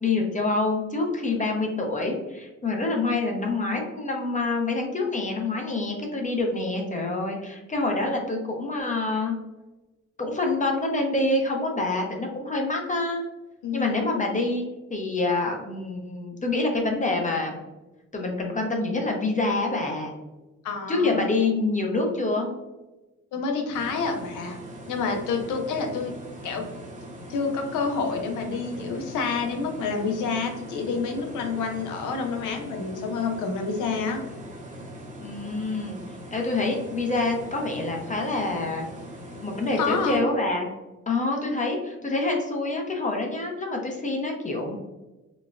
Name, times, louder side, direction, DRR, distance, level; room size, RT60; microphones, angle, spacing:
voice 1, 0.0-9.3 10.2-13.2 13.7-17.6 18.1-20.1 20.9-22.5 35.2-36.0 36.3-38.9 39.4-40.7 41.1-44.8, left 2 dB, 25° left, 1 dB, 0.7 m, -26 dB
voice 2, 13.6-14.0 20.6-21.3 23.3-24.6 24.9-26.1 26.4-26.6 27.3-34.2 39.8-40.2, left 4 dB, 80° left, 4 dB, 0.7 m, -28 dB
sound 1, 23.7-40.2, right 1 dB, 25° right, 0.8 m, -41 dB
4.0 x 2.2 x 2.4 m, 1.1 s
cardioid pair, 90°, 30 cm